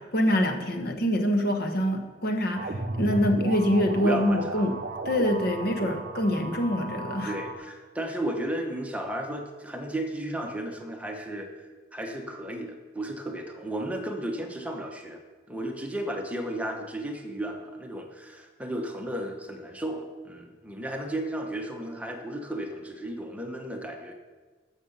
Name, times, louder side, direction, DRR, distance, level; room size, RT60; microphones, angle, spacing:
voice 1, 0.0-4.7 5.0-7.3, equal, 55° left, 5 dB, 1.2 m, -25 dB
sound 1, 2.5-7.5, right 2 dB, 45° right, 0.7 m, -35 dB
voice 2, 4.0-4.7 7.3-11.5 11.9-15.2 15.5-24.1, right 1 dB, 5° right, 2 dB, 1.0 m, -34 dB
13.5 x 6.5 x 5.6 m, 1.3 s
head